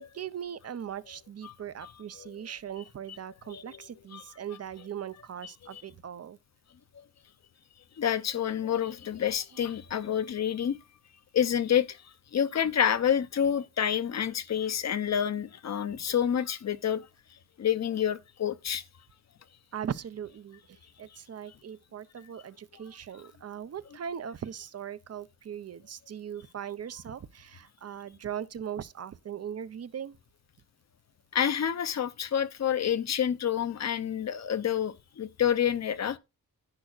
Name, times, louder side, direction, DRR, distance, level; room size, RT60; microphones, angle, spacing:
voice 1, 0.0-6.4 9.6-9.7 15.9-16.0 19.7-30.2, right 9 dB, 45° right, 0.5 m, -39 dB
voice 2, 3.5-3.8 4.1-4.2 5.7-5.8 8.0-10.8 11.3-12.0 12.3-17.1 17.6-18.8 31.3-36.2, left 9 dB, 50° left, 0.6 m, -28 dB
10.5 x 9.5 x 2.3 m
wide cardioid pair, 155°, 35 cm